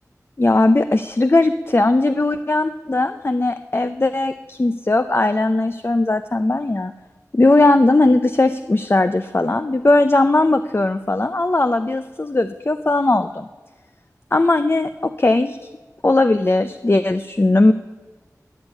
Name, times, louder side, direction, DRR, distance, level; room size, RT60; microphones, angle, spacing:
voice 1, 0.4-6.9 7.3-13.5 14.3-15.7 16.0-17.7, left 2 dB, 40° left, 9 dB, 0.6 m, -18 dB
20.5 x 7.2 x 9.3 m, 1.3 s
wide cardioid pair, 55°, 6 cm